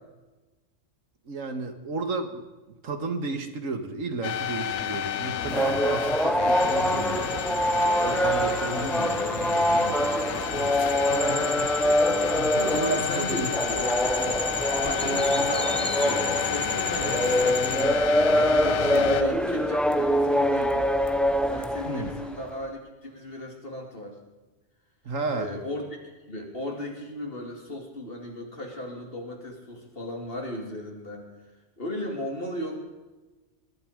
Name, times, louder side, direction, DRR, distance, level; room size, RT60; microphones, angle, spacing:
voice 1, 1.3-2.4 2.8-7.5 8.0-10.2 12.7-14.5 21.9-22.1 25.1-25.5, right 3 dB, 85° right, 8 dB, 2.0 m, -33 dB
sound 1, 4.2-19.2, left 10 dB, 65° left, 1.0 m, -31 dB
sound 2, 5.4-22.4, equal, ahead, 0.7 m, -25 dB
sound 3, 6.6-17.8, left 2 dB, 20° left, 1.5 m, -35 dB
voice 2, 11.3-11.6 12.5-13.7 14.8-20.9 21.5-24.2 25.3-31.3 31.8-32.8, left 1 dB, 45° left, 1 dB, 3.3 m, -36 dB
21.5 x 12.5 x 5.2 m, 1.2 s
omnidirectional pair, 1.3 m